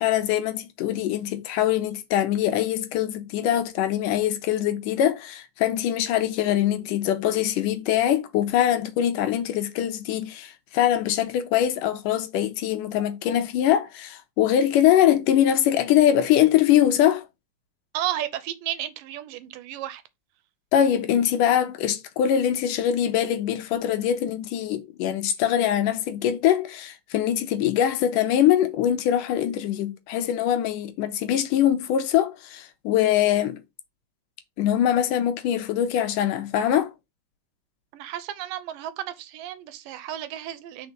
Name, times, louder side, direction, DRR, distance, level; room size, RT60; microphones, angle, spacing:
voice 1, 0.0-17.3 20.7-33.6 34.6-36.9, left 11 dB, 75° left, 2.3 m, -23 dB
voice 2, 17.9-20.0 37.9-40.9, right 12 dB, 80° right, 2.4 m, -33 dB
5.3 x 4.4 x 5.8 m
omnidirectional pair, 4.0 m